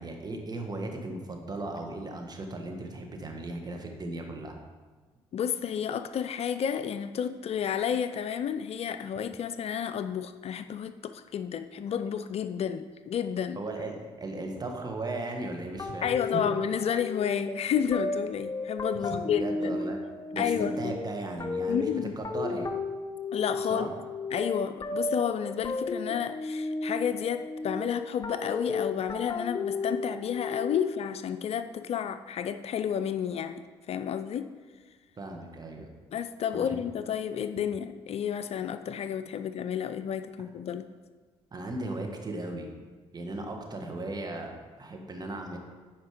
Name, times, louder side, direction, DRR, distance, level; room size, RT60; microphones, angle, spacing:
voice 1, 0.0-4.6 13.5-16.4 19.0-20.0 20.3-22.7 23.7-23.9 35.2-35.9 36.5-36.7 41.5-42.7 43.1-45.6, right 2 dB, 30° right, 2 dB, 1.7 m, -37 dB
voice 2, 5.3-13.6 16.0-19.8 20.4-20.9 21.7-22.1 23.3-23.9 24.3-34.5 36.1-40.9, left 8 dB, 50° left, 10 dB, 0.4 m, -31 dB
sound 1, 15.8-31.1, left 3 dB, 30° left, 0.8 m, -34 dB
9.3 x 5.1 x 5.0 m, 1.4 s
hypercardioid pair, 55°, 13 cm